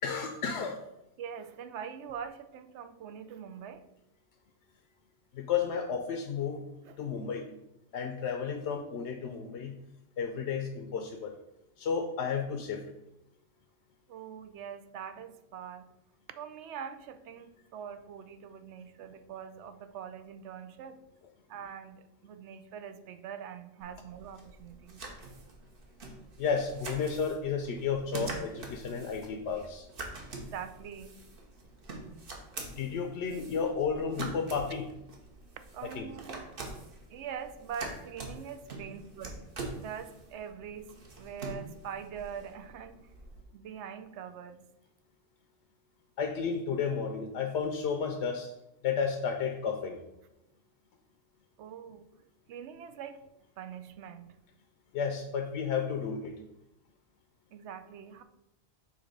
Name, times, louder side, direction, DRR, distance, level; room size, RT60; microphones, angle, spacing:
voice 1, 0.0-0.8 5.3-6.6 7.0-7.4 7.9-9.8 10.2-11.3 11.8-12.8 26.4-29.9 32.8-34.9 35.9-36.1 46.2-48.5 48.8-50.0 54.9-56.4, left 6 dB, 75° left, 4 dB, 0.9 m, -32 dB
voice 2, 1.2-3.8 6.8-7.1 14.1-15.9 16.4-21.0 21.5-25.0 28.5-28.6 30.4-31.1 35.7-36.6 37.1-39.4 39.8-43.1 43.5-44.6 51.6-52.1 52.5-53.2 53.6-54.4 57.5-58.2, right 7 dB, 80° right, 9 dB, 0.9 m, -43 dB
sound 1, 23.8-43.4, right 2 dB, 55° right, 1.1 m, -45 dB
6.7 x 2.9 x 5.1 m, 0.87 s
omnidirectional pair, 1.2 m